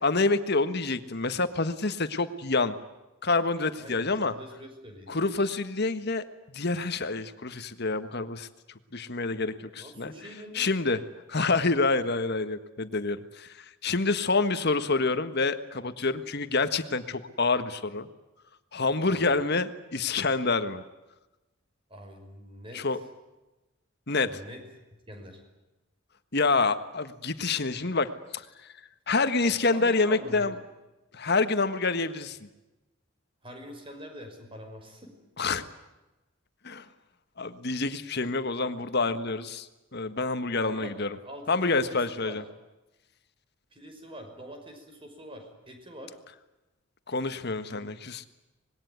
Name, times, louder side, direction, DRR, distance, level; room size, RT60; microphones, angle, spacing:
voice 1, 0.0-2.7 3.2-4.3 5.1-6.2 6.5-8.5 8.9-10.1 10.5-11.0 11.3-18.1 18.7-20.8 22.7-23.0 24.1-24.3 26.3-28.7 29.1-30.5 31.1-32.4 35.4-35.7 36.6-36.8 37.4-41.1 41.5-42.4 47.1-48.2, left 3 dB, 55° left, 10 dB, 1.6 m, -27 dB
voice 2, 3.8-5.1 9.8-10.6 19.1-19.3 21.9-22.8 24.2-24.6 25.1-25.4 29.7-30.5 33.4-35.1 40.6-41.0 41.2-42.4 43.7-46.1 47.7-47.8, equal, 25° right, 5 dB, 5.9 m, -44 dB
25.5 x 21.0 x 9.5 m, 1.0 s
head